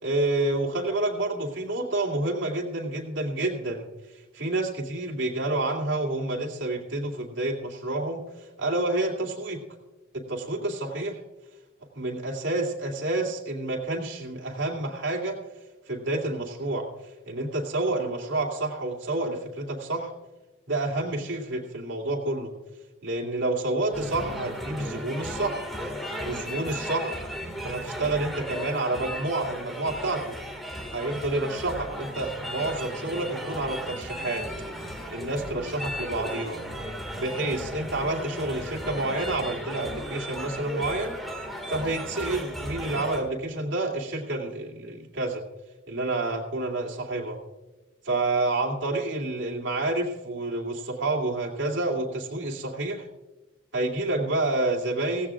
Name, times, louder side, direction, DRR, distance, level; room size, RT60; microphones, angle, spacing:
voice 1, 0.0-3.9 4.3-8.2 8.6-9.6 10.1-11.2 11.9-15.4 15.9-16.9 17.3-20.1 20.7-22.5 23.0-25.6 26.2-27.3 27.6-30.3 30.9-34.5 35.1-36.6 37.2-41.2 41.7-45.4 45.9-47.4 48.0-53.1 53.7-55.3, right 2 dB, 80° right, -1 dB, 2.5 m, -29 dB
sound 1, 23.9-43.2, equal, ahead, 1.9 m, -35 dB
17.0 x 16.0 x 2.4 m, 1.1 s
head